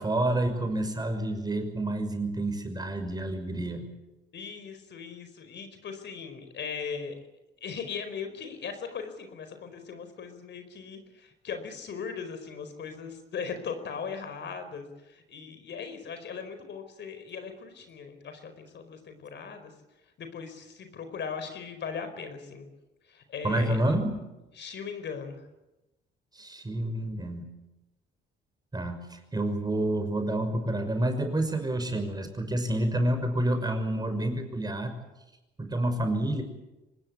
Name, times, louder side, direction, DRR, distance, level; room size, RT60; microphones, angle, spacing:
voice 1, 0.0-3.9 23.4-24.2 26.3-27.5 28.7-34.9 35.6-36.4, right 1 dB, 20° right, 6 dB, 6.0 m, -29 dB
voice 2, 4.3-7.2 7.6-19.7 20.2-22.7 23.1-23.8 24.5-25.5, left 6 dB, 65° left, 8 dB, 4.8 m, -39 dB
25.0 x 20.0 x 8.6 m, 1.0 s
cardioid pair, 90°, 20 cm